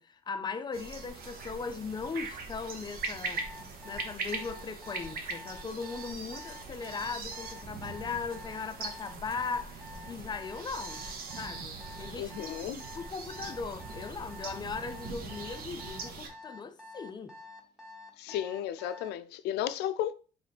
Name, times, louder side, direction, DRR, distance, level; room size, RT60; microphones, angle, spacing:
voice 1, 0.0-3.5 3.8-11.0 11.3-12.3 12.8-17.4, left 5 dB, 25° left, 0.4 m, -38 dB
sound 1, 0.7-16.3, right 4 dB, 60° right, 0.9 m, -41 dB
Alarm, 3.4-19.2, left 2 dB, ahead, 1.1 m, -48 dB
voice 2, 12.2-12.8 18.2-20.1, left 11 dB, 80° left, 0.4 m, -34 dB
3.2 x 3.2 x 3.9 m
cardioid pair, 110°, 17 cm